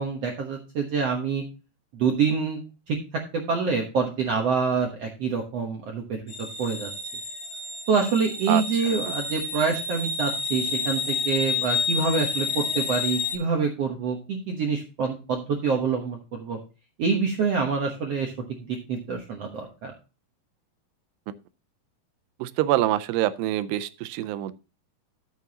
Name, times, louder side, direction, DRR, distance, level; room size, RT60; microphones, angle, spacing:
voice 1, 0.0-1.4 1.9-2.6 2.9-3.0 3.3-6.2 6.6-6.9 7.9-16.6 17.0-18.3 18.6-19.9, right 5 dB, 75° right, 1.4 m, -26 dB
sound 1, 6.3-13.3, left 4 dB, 40° left, 2.2 m, -30 dB
voice 2, 8.5-9.1 21.3-21.4 22.4-24.5, right 14 dB, 90° right, 2.7 m, -26 dB
13.0 x 7.1 x 2.9 m
omnidirectional pair, 4.7 m